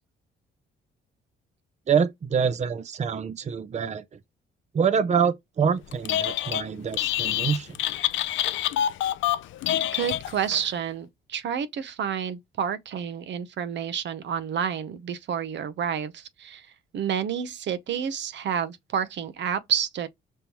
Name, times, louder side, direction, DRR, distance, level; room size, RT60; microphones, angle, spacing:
voice 1, 1.9-4.0 4.7-7.8, right 7 dB, 35° right, 0.7 m, -25 dB
Telephone, 5.9-6.6 6.9-10.6, left 12 dB, 75° left, 0.4 m, -27 dB
voice 2, 9.9-16.7 16.9-20.1, right 8 dB, 65° right, 0.8 m, -29 dB
5.4 x 3.2 x 2.9 m
cardioid pair, 90°, 20 cm